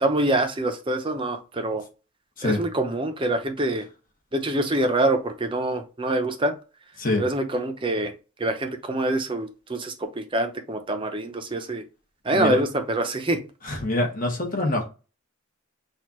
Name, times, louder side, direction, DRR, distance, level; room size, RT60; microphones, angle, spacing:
voice 1, 0.0-1.8 2.4-3.9 4.3-6.5 7.2-8.1 8.4-11.8 12.2-13.4, right 1 dB, 25° right, 0.7 m, -25 dB
voice 2, 12.3-12.6 13.6-14.9, left 2 dB, 40° left, 1.3 m, -25 dB
6.3 x 2.5 x 3.0 m
head